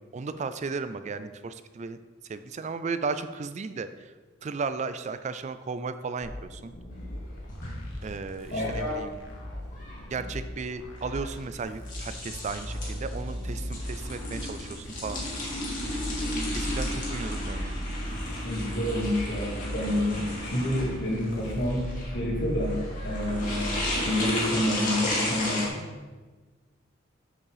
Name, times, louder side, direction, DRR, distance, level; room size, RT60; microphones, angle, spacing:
voice 1, 0.1-2.0 2.3-3.9 4.4-6.7 8.0-9.2 10.1-15.2 16.5-17.8 24.2-24.4, right 4 dB, 35° right, 11 dB, 0.4 m, -35 dB
sound 1, 6.2-22.1, left 1 dB, 80° left, 1.6 m, -41 dB
sound 2, 6.9-25.7, left 1 dB, 45° left, 2.3 m, -34 dB
sound 3, 12.2-24.0, equal, 55° right, 1.4 m, -37 dB
voice 2, 18.4-21.8 22.1-25.8, left 1 dB, 60° left, -2 dB, 2.3 m, -29 dB
7.3 x 7.3 x 4.9 m, 1.3 s
head